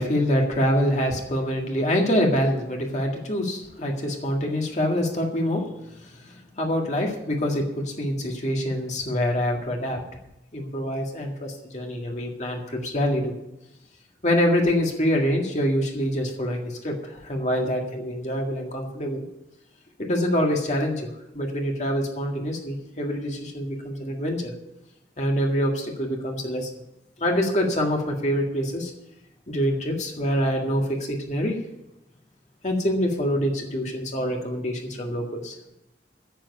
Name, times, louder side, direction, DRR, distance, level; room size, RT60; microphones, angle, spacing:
voice 1, 0.0-5.6 6.6-10.0 10.5-13.3 14.2-19.2 20.0-21.1 21.3-24.5 25.2-26.7 27.2-28.9 29.5-31.5 32.6-35.5, equal, 40° left, 0 dB, 1.9 m, -25 dB
10.0 x 7.7 x 9.6 m, 0.89 s
head